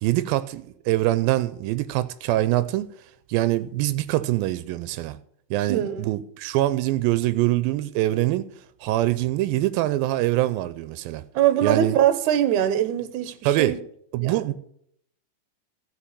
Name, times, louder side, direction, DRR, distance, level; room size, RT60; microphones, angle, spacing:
voice 1, 0.0-2.9 3.3-5.2 5.5-8.5 8.8-11.2 11.6-12.0 13.5-13.8 14.1-14.5, right 16 dB, 90° right, 2.4 m, -24 dB
voice 2, 5.7-6.1 11.3-13.8 14.2-14.5, right 11 dB, 70° right, 2.2 m, -22 dB
14.5 x 5.7 x 8.2 m
omnidirectional pair, 4.1 m